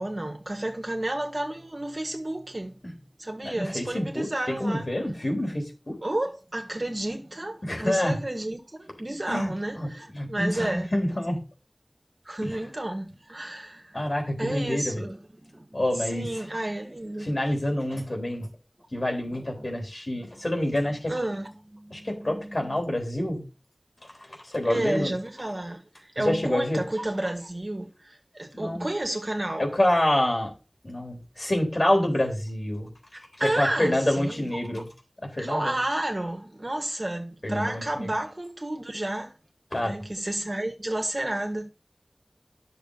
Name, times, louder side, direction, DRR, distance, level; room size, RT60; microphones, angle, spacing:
voice 1, 0.0-2.8 3.2-4.9 6.0-10.9 12.3-17.3 19.3-19.8 20.1-20.2 21.1-22.8 24.6-29.7 33.1-34.5 35.4-39.3 39.8-41.7, right 1 dB, 55° right, 1.7 m, -31 dB
voice 2, 3.4-5.9 7.6-8.2 9.3-9.9 10.1-11.4 12.4-12.5 13.9-15.0 15.7-16.3 17.2-18.5 18.9-21.1 21.9-23.4 24.5-25.1 26.2-26.8 28.5-28.9 29.6-30.5 30.8-32.9 33.4-34.9 35.2-35.7 37.4-38.1 39.7-40.0, left 1 dB, 65° left, 3.5 m, -27 dB
10.5 x 6.7 x 4.1 m
wide cardioid pair, 40°, 0 cm